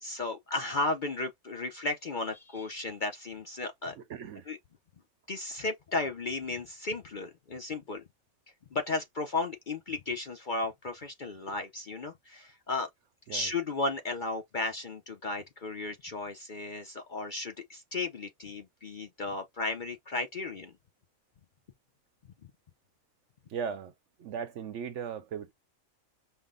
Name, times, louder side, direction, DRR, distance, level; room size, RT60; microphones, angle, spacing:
voice 1, 0.0-4.0 4.5-4.6 5.3-8.0 8.7-12.9 13.3-20.7, left 3 dB, 50° left, 0.6 m, -34 dB
voice 2, 4.0-4.5 13.3-13.5 23.5-23.9 24.2-25.5, right 7 dB, 65° right, 0.9 m, -37 dB
5.5 x 2.1 x 3.7 m
omnidirectional pair, 1.4 m